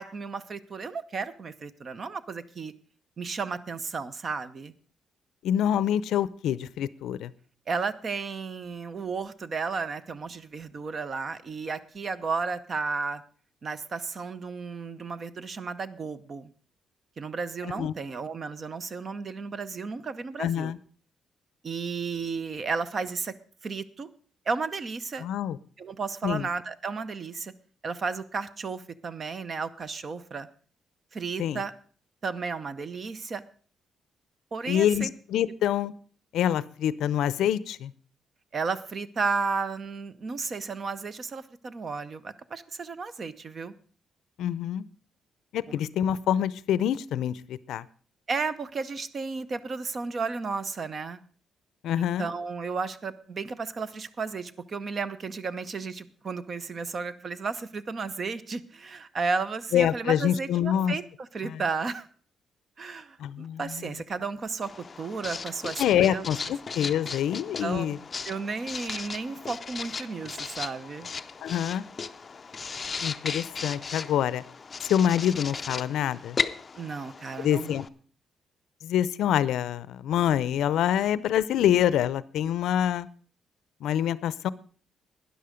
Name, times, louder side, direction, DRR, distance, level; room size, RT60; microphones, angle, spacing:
voice 1, 0.0-2.7 3.2-4.7 7.7-13.2 13.6-16.5 17.2-20.7 21.6-23.4 23.6-24.1 24.5-25.3 25.8-27.5 27.8-30.5 31.1-31.7 32.2-33.4 34.5-35.1 38.5-43.7 45.7-45.8 48.3-51.2 52.0-62.1 62.8-64.7 65.0-66.3 67.6-68.0 68.2-71.1 76.7-77.7, right 4 dB, 35° right, 14 dB, 0.7 m, -33 dB
voice 2, 5.4-7.3 17.6-17.9 20.4-20.8 25.2-25.6 26.2-26.5 31.4-31.6 34.7-35.9 36.3-37.9 44.4-44.8 45.5-47.8 51.8-52.3 59.7-60.9 61.4-61.6 63.2-63.9 65.8-68.0 71.4-71.8 73.0-74.4 74.8-76.4 77.4-77.9 78.8-83.1 83.8-84.5, left 10 dB, 85° left, 18 dB, 0.5 m, -26 dB
Writing, 64.6-77.9, left 5 dB, 25° left, 0.5 m, -36 dB
12.5 x 10.5 x 5.1 m, 0.42 s
cardioid pair, 160°, 0 cm